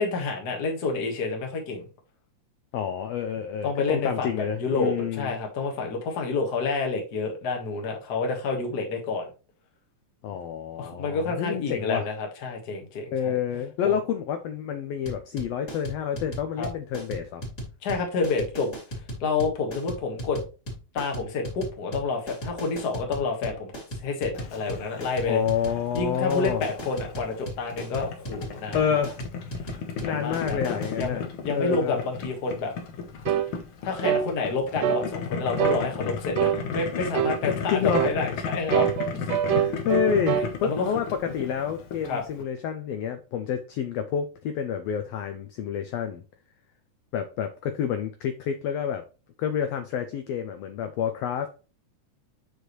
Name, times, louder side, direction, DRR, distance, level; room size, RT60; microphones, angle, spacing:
voice 1, 0.0-1.9 3.6-9.3 10.8-13.3 13.8-14.0 16.6-16.7 17.8-18.7 19.2-20.4 20.9-23.7 24.0-25.4 25.9-28.8 30.0-32.7 33.8-38.9 39.1-39.2 40.3-40.9 42.0-42.2, left 4 dB, 45° left, 1.5 m, -29 dB
voice 2, 2.7-5.3 10.2-12.1 13.1-17.4 25.2-26.6 28.7-29.2 30.0-31.2 31.5-32.0 37.5-38.1 39.4-46.2 47.1-49.0 49.4-51.5, left 8 dB, 75° left, 1.5 m, -28 dB
sound 1, 15.1-31.1, equal, 25° left, 2.8 m, -36 dB
Boiling, 24.3-42.4, left 6 dB, 60° left, 1.5 m, -35 dB
sound 2, 33.3-33.5 34.0-34.3 34.8-35.1 35.6-35.8 36.4-36.6 37.1-37.4 37.9-38.2 38.7-40.5, right 9 dB, 75° right, 1.6 m, -24 dB
8.2 x 4.6 x 3.0 m
omnidirectional pair, 3.4 m